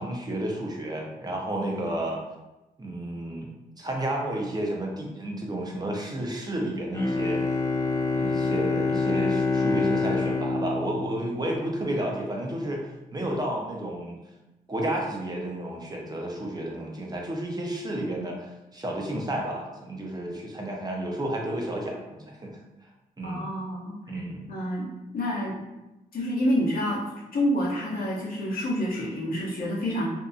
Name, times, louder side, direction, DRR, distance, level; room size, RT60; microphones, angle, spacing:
voice 1, 0.0-2.2 2.8-3.5 3.8-7.4 8.1-12.8 13.1-14.2 14.7-22.6 23.2-23.4 24.1-24.5, right 1 dB, 25° right, -1 dB, 0.8 m, -31 dB
Bowed string instrument, 6.9-11.9, left 3 dB, 20° left, 0.3 m, -26 dB
voice 2, 23.2-23.9 24.5-24.9 25.1-25.6 26.1-27.0 27.3-30.1, equal, 65° left, -6 dB, 0.9 m, -27 dB
2.7 x 2.2 x 2.6 m, 1.0 s
supercardioid pair, 50°, 16 cm